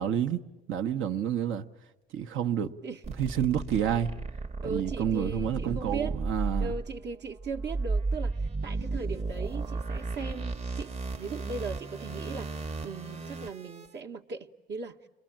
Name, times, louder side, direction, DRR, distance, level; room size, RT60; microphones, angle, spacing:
voice 1, 0.0-1.7 2.1-2.7 3.2-4.2 4.6-6.8, right 9 dB, 85° right, 1.0 m, -29 dB
sound 1, 3.0-13.9, right 3 dB, 30° right, 0.9 m, -34 dB
voice 2, 4.6-6.2 6.6-15.0, right 4 dB, 60° right, 1.0 m, -38 dB
30.0 x 22.5 x 8.8 m
cardioid pair, 90°, 20 cm